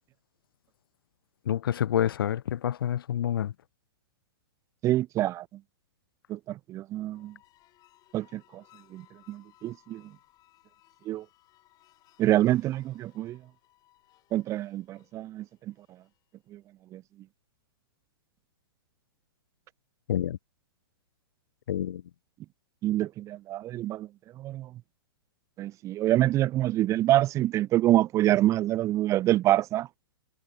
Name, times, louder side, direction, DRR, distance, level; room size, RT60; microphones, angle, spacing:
voice 1, 1.5-3.5 20.1-20.4 21.7-22.0, left 10 dB, 65° left, 0.7 m, -28 dB
voice 2, 4.8-5.4 6.3-7.3 8.1-8.6 8.9-9.0 9.3-10.0 11.1-11.2 12.2-13.4 14.3-15.7 16.5-16.6 16.9-17.0 22.8-24.1 24.4-24.7 25.6-29.9, right 14 dB, 25° right, 0.5 m, -26 dB
sound 1, 6.9-16.3, left 15 dB, 30° left, 7.2 m, -63 dB
hypercardioid pair, 120°, 13 cm